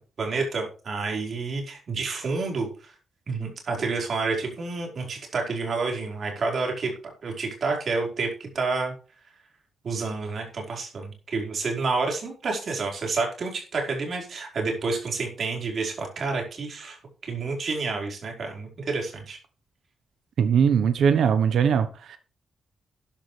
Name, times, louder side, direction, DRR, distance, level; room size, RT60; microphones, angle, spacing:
voice 1, 0.2-2.9 3.3-6.9 7.2-8.9 9.8-17.0 17.2-19.4, right 4 dB, 50° right, 4.8 m, -29 dB
voice 2, 20.4-22.2, right 7 dB, 75° right, 1.1 m, -21 dB
13.0 x 10.5 x 3.4 m
wide cardioid pair, 155°, 0 cm